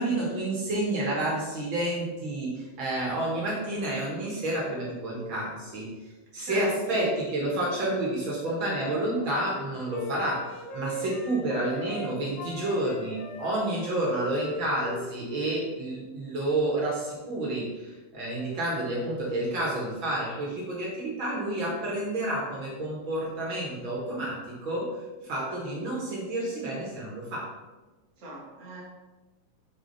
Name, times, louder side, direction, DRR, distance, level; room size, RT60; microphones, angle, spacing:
voice 1, 0.0-5.9 6.3-24.9 25.2-27.5, right 1 dB, 55° right, -4 dB, 1.4 m, -30 dB
voice 2, 6.4-7.0 28.2-28.8, equal, 85° right, -5 dB, 0.6 m, -40 dB
Wind instrument woodwind instrument, 9.0-12.1 12.4-15.7, left 1 dB, 85° left, 1.5 m, -40 dB
7.1 x 4.6 x 4.1 m, 1.2 s
omnidirectional pair, 4.4 m